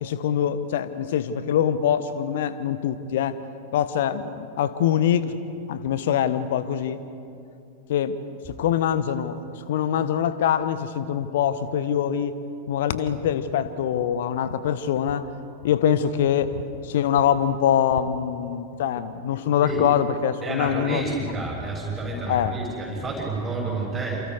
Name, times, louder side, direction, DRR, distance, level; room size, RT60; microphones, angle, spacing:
voice 1, 0.0-3.4 3.7-5.4 5.7-7.0 7.9-9.4 9.7-12.3 12.7-15.3 15.6-21.2 22.3-22.5, left 9 dB, 55° left, 13 dB, 1.2 m, -24 dB
voice 2, 20.4-24.3, right 2 dB, 15° right, -5 dB, 6.5 m, -29 dB
29.5 x 27.5 x 4.8 m, 2.6 s
figure-of-eight pair, 90°, 0 cm